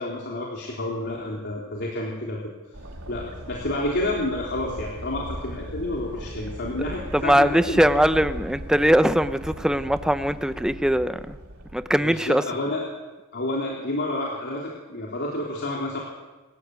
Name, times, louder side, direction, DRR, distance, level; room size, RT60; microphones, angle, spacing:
voice 1, 0.0-2.4 3.1-8.2 12.0-12.8 13.3-16.0, left 1 dB, 50° left, -3 dB, 3.5 m, -29 dB
sound 1, 2.7-12.3, right 1 dB, 80° right, 3.1 m, -38 dB
voice 2, 7.1-11.4 11.7-12.4, equal, 5° right, 11 dB, 0.7 m, -21 dB
27.5 x 14.5 x 8.2 m, 1.2 s
head